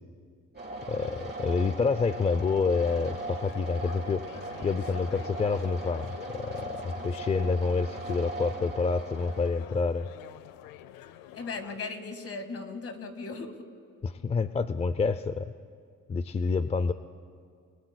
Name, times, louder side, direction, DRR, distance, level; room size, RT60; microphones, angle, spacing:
sound 1, 0.5-9.5, right 2 dB, 30° right, 3.8 m, -39 dB
voice 1, 0.9-4.2 4.6-10.1 14.0-15.5 16.1-16.9, left 4 dB, 20° left, 12 dB, 0.3 m, -28 dB
sound 2, 2.8-11.8, left 12 dB, 85° left, 0.6 m, -48 dB
voice 2, 11.3-13.6, left 4 dB, 45° left, 7 dB, 1.8 m, -37 dB
27.0 x 21.5 x 2.2 m, 2.1 s
cardioid pair, 100°, 33 cm